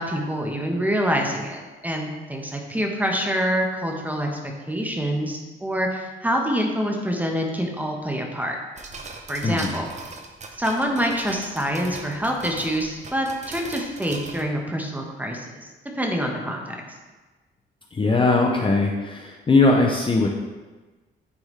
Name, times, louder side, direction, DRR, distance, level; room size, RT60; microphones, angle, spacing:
voice 1, 0.0-4.4 4.7-8.6 9.3-9.9 10.6-15.5 15.9-16.7, equal, 10° right, 1 dB, 1.1 m, -26 dB
sound 1, 8.8-14.4, right 3 dB, 35° right, 0.7 m, -39 dB
voice 2, 9.4-9.7 17.9-20.3, left 3 dB, 25° left, 0 dB, 0.6 m, -20 dB
9.5 x 3.5 x 3.3 m, 1.3 s
cardioid pair, 90°, 20 cm